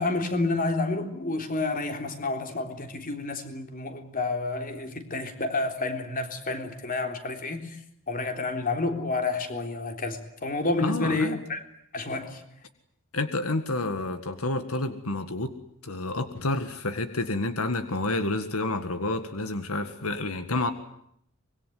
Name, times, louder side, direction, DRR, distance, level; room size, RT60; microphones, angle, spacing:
voice 1, 0.0-7.6 8.1-11.6 11.9-12.4, left 3 dB, 40° left, 3.6 m, -29 dB
voice 2, 10.8-11.4 13.1-15.5 15.8-20.7, left 2 dB, 80° left, 1.9 m, -29 dB
25.5 x 22.0 x 9.5 m
head